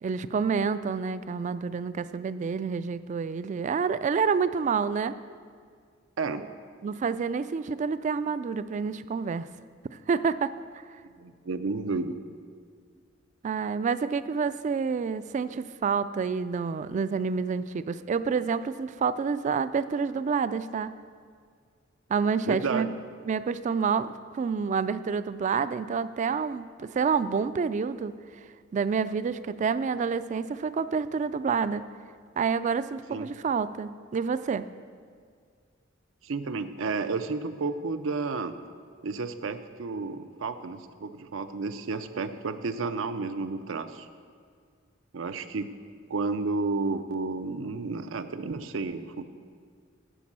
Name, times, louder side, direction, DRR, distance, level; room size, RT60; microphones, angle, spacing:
voice 1, 0.0-5.2 6.4-6.5 6.8-9.5 9.9-10.5 13.4-20.9 22.1-22.9 23.3-28.1 28.7-31.9 32.4-34.7, right 5 dB, 40° right, 14 dB, 0.3 m, -28 dB
voice 2, 11.2-12.2 22.5-23.0 33.1-33.3 36.2-38.6 39.0-44.1 45.1-45.7 46.1-49.2, right 4 dB, 85° right, 10 dB, 0.6 m, -31 dB
10.0 x 5.4 x 7.4 m, 2.1 s
head